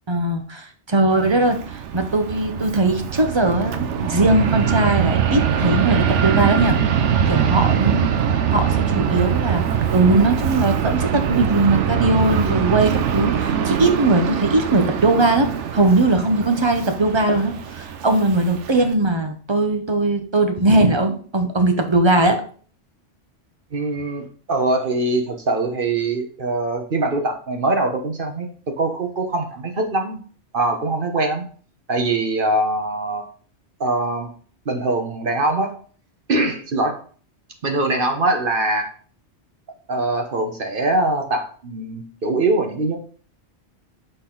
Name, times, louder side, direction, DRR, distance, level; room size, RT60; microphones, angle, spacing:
voice 1, 0.1-6.8 7.3-8.1 8.5-9.6 9.9-22.4, right 2 dB, 25° right, 6 dB, 0.7 m, -19 dB
Fixed-wing aircraft airplane, 1.1-18.9, right 8 dB, 80° right, 1.0 m, -22 dB
voice 2, 23.7-30.2 30.5-31.4 31.9-33.3 33.8-34.3 34.6-35.7 36.3-37.0 37.6-38.9 39.9-43.0, right 2 dB, 50° right, 4 dB, 1.1 m, -22 dB
6.6 x 3.9 x 3.8 m, 0.44 s
omnidirectional pair, 1.2 m